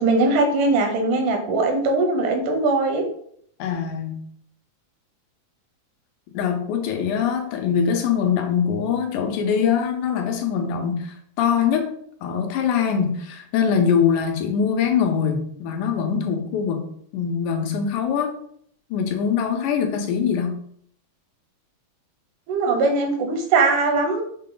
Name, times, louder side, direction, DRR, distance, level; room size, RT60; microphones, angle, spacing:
voice 1, 0.0-3.1 22.5-24.2, right 3 dB, 85° right, 4 dB, 2.3 m, -20 dB
voice 2, 3.6-4.2 6.3-11.9 12.2-18.4 18.9-20.6, left 7 dB, 85° left, 4 dB, 2.2 m, -23 dB
5.7 x 2.2 x 3.8 m, 0.65 s
omnidirectional pair, 3.5 m